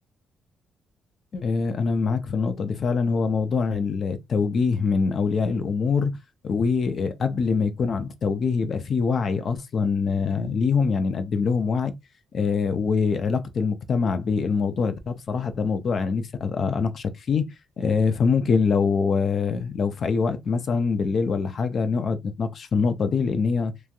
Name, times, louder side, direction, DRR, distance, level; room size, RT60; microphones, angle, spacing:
voice 1, 1.3-6.1 6.4-11.9 12.3-17.5 17.8-23.7, left 5 dB, 50° left, 0.5 m, -24 dB
3.1 x 2.3 x 2.5 m
cardioid pair, 90°, 0 cm